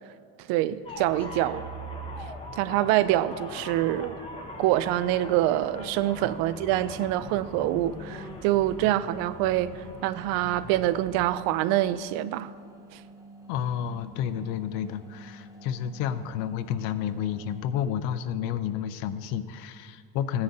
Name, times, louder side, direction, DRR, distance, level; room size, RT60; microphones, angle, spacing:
voice 1, 0.5-1.7 2.5-4.2 4.6-12.5 12.9-13.0, right 14 dB, 75° right, 0.5 m, -25 dB
sound 1, 0.9-11.3, left 1 dB, 15° left, 0.9 m, -41 dB
sound 2, 4.4-18.0, right 1 dB, 10° right, 0.7 m, -49 dB
voice 2, 13.5-20.4, left 9 dB, 80° left, 0.6 m, -30 dB
15.5 x 9.7 x 2.7 m
cardioid pair, 160°, 35 cm